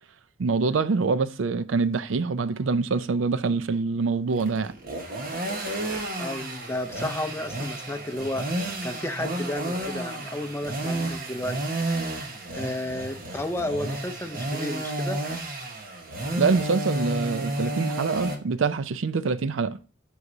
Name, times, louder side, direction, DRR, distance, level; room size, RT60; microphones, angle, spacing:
voice 1, 0.4-4.7 16.4-19.8, right 4 dB, 80° right, 0.5 m, -25 dB
sound 1, 4.3-18.4, right 1 dB, 50° right, 1.3 m, -31 dB
voice 2, 6.2-8.5 8.8-11.6 12.5-15.2, left 1 dB, 15° left, 0.5 m, -32 dB
7.9 x 4.8 x 2.7 m
head